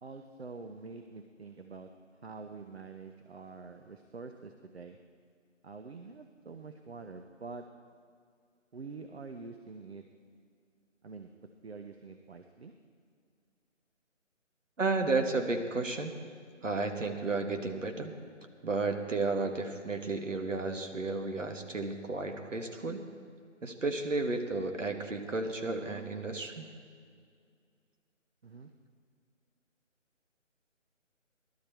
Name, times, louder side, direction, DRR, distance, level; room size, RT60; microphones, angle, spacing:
voice 1, 0.0-5.0 5.6-7.6 8.7-10.0 11.0-12.7 28.4-28.7, right 4 dB, 55° right, 6 dB, 0.8 m, -46 dB
voice 2, 14.8-16.2 16.6-18.1 18.6-23.0 23.6-26.7, right 3 dB, 75° right, 5 dB, 1.5 m, -32 dB
18.0 x 12.5 x 4.5 m, 2.2 s
figure-of-eight pair, 160°, 38 cm